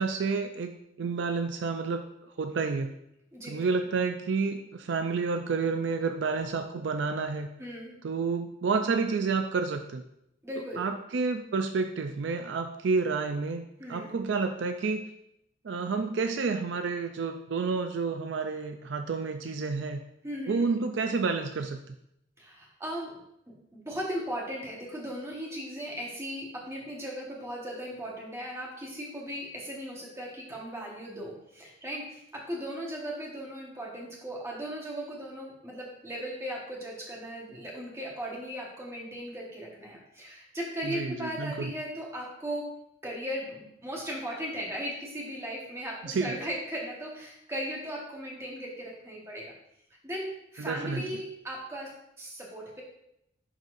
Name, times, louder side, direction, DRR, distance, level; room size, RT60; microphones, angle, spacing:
voice 1, 0.0-2.0 2.4-2.9 3.5-7.5 8.0-10.0 10.8-15.0 15.6-20.0 20.5-21.9 40.9-41.7 46.0-46.3 50.6-51.0, right 4 dB, 65° right, 6 dB, 0.4 m, -30 dB
voice 2, 3.3-3.6 7.6-7.9 10.4-10.8 13.8-14.1 20.2-20.6 22.4-23.1 23.7-42.6 43.0-49.5 50.0-51.9 52.2-52.8, equal, 15° right, -3 dB, 1.4 m, -37 dB
11.0 x 4.1 x 2.6 m, 0.79 s
head